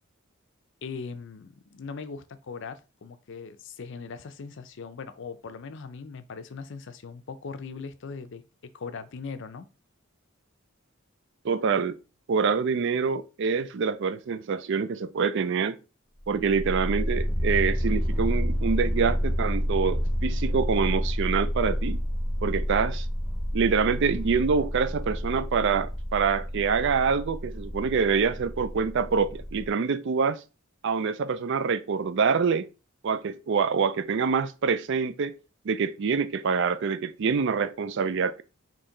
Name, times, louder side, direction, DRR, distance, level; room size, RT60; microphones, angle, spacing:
voice 1, 0.8-9.7, left 5 dB, 60° left, 0.5 m, -40 dB
voice 2, 11.4-12.0 12.3-15.8 16.3-22.0 22.4-23.1 23.5-30.4 30.8-32.7 33.0-35.3 35.7-38.4, right 5 dB, 60° right, 0.4 m, -26 dB
sound 1, 16.2-29.7, equal, ahead, 0.5 m, -29 dB
4.4 x 3.1 x 3.8 m
head